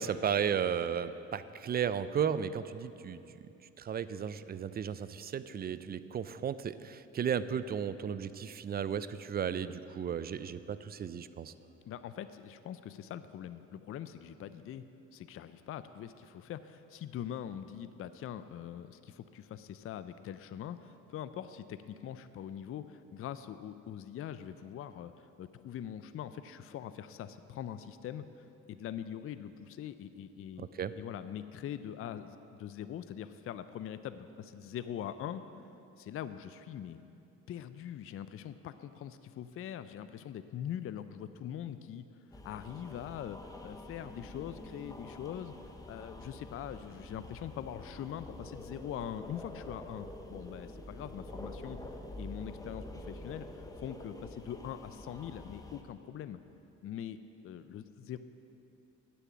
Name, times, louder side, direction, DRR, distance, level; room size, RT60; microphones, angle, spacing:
voice 1, 0.0-3.5 3.8-11.5 30.6-30.9, right 8 dB, 35° right, 14 dB, 0.4 m, -34 dB
voice 2, 11.9-14.8 15.1-35.4 36.0-37.0 37.5-42.1 42.3-45.5 45.9-51.8 52.2-56.4 56.8-58.2, left 10 dB, 50° left, 12 dB, 0.4 m, -43 dB
sound 1, 42.3-55.8, left 1 dB, 10° left, 0.9 m, -47 dB
9.0 x 6.9 x 7.3 m, 2.8 s
cardioid pair, 90°, 30 cm